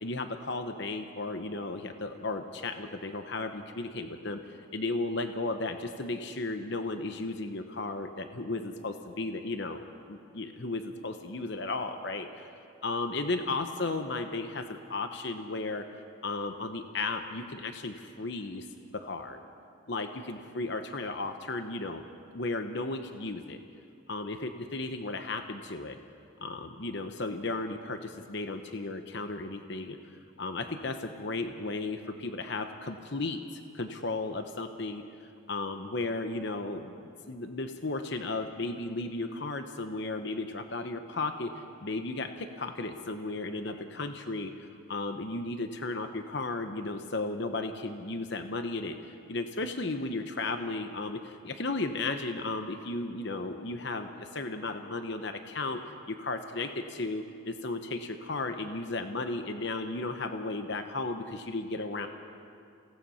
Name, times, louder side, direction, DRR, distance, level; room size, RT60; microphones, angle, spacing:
voice 1, 0.0-12.5 12.8-18.7 18.9-19.4 19.9-22.0 22.3-23.6 24.1-26.0 26.4-30.0 30.4-35.0 35.5-41.5 41.8-55.8 56.1-62.1, left 3 dB, 55° left, 7 dB, 1.0 m, -35 dB
29.0 x 18.0 x 5.7 m, 2.5 s
head